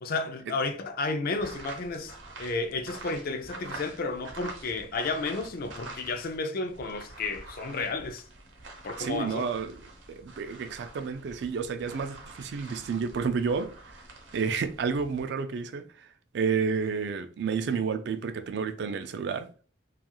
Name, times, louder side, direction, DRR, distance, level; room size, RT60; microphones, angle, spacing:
voice 1, 0.0-8.3 8.8-9.5, left 3 dB, 50° left, 0.4 m, -32 dB
sound 1, 1.3-6.4 6.7-15.2, right 2 dB, 90° right, 0.7 m, -46 dB
voice 2, 9.0-9.7 10.1-14.0 14.3-16.1 16.3-19.5, right 5 dB, 65° right, 0.3 m, -30 dB
2.4 x 2.3 x 2.9 m
head